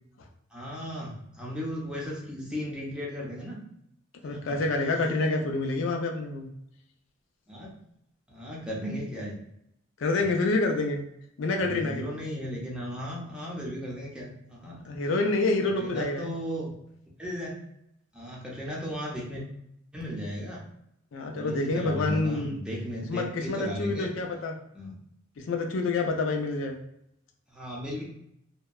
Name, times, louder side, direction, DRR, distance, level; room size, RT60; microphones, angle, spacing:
voice 1, 0.5-3.6 4.3-4.7 7.5-7.7 8.3-9.4 11.6-14.8 15.6-16.7 17.2-17.6 18.1-19.4 19.9-20.6 21.3-24.1 24.7-25.0 27.5-28.0, equal, 5° right, -4 dB, 0.5 m, -36 dB
voice 2, 4.2-6.5 10.0-11.0 11.4-12.0 14.8-16.3 21.1-22.6 23.1-24.5 25.4-26.7, left 3 dB, 65° left, 3 dB, 0.4 m, -27 dB
2.7 x 2.1 x 2.2 m, 0.76 s
head